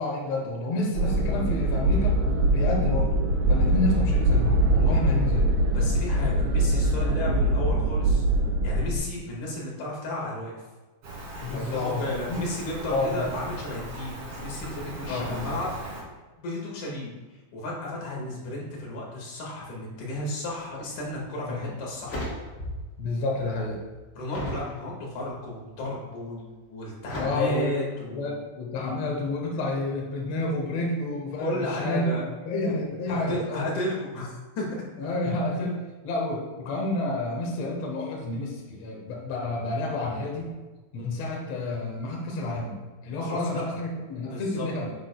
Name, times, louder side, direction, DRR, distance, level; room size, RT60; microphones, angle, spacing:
voice 1, 0.0-2.2 2.5-3.2 3.5-5.5 7.2-7.4 11.4-12.4 12.9-13.4 15.0-15.5 21.4-21.7 23.0-23.8 27.1-27.7 28.0-32.1 32.4-33.7 35.0-40.5 40.9-44.9, left 2 dB, 80° left, -1 dB, 1.5 m, -30 dB
sound 1, 0.9-9.0, right 1 dB, 75° right, 4.0 m, -23 dB
voice 2, 5.7-8.2 8.6-10.6 11.5-15.7 16.4-17.1 17.5-22.3 24.2-28.3 31.4-32.2 33.1-34.6 43.1-43.8 44.2-44.7, left 1 dB, 50° left, -3 dB, 3.0 m, -33 dB
Rain, 11.0-16.0, right 1 dB, 50° right, 3.5 m, -39 dB
sound 2, 21.1-21.2 21.7-23.0 23.3-24.7 25.3-25.8 27.0-27.2, left 1 dB, 35° left, 2.7 m, -36 dB
9.8 x 8.6 x 2.3 m, 1.2 s
omnidirectional pair, 5.1 m